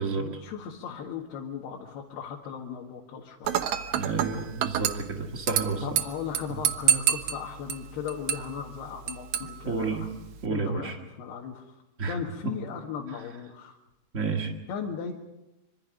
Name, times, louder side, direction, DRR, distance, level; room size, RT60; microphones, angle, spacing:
voice 1, 0.2-3.7 5.8-10.1 10.5-11.7 12.1-13.8 14.7-15.1, left 7 dB, 70° left, 0 dB, 3.7 m, -37 dB
Dishes pots and pans / Glass, 3.5-10.5, right 10 dB, 85° right, 1.6 m, -30 dB
voice 2, 3.9-5.8 9.6-10.0 10.4-11.0 12.0-12.2 12.4-12.5 14.1-14.5, right 4 dB, 65° right, 2 dB, 0.7 m, -30 dB
26.0 x 25.0 x 5.2 m, 0.94 s
omnidirectional pair, 4.9 m